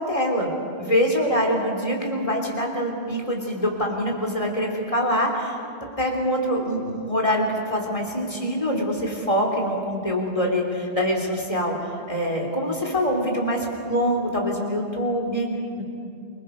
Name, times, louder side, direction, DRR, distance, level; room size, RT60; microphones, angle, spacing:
voice 1, 0.0-5.6 6.0-15.5 15.8-15.9, equal, 30° left, 0 dB, 3.4 m, -24 dB
27.5 x 20.5 x 5.3 m, 2.5 s
omnidirectional pair, 1.1 m